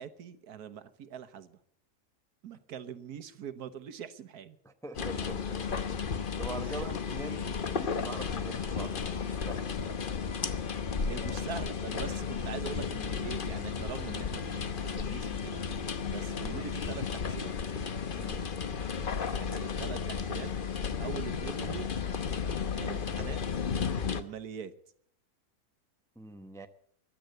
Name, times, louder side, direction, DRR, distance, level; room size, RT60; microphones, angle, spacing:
voice 1, 0.0-1.6 2.4-4.6 6.7-6.8 11.0-15.6 16.0-17.5 19.3-20.5 21.0-21.9 22.8-23.4 24.1-24.7, right 8 dB, 80° right, 12 dB, 1.5 m, -42 dB
voice 2, 4.6-5.6 6.4-9.7 18.1-18.5 26.2-26.7, right 2 dB, 5° left, 7 dB, 0.7 m, -43 dB
sound 1, 4.9-24.2, left 6 dB, 40° left, 0.9 m, -34 dB
15.5 x 11.0 x 8.0 m, 0.64 s
omnidirectional pair, 1.6 m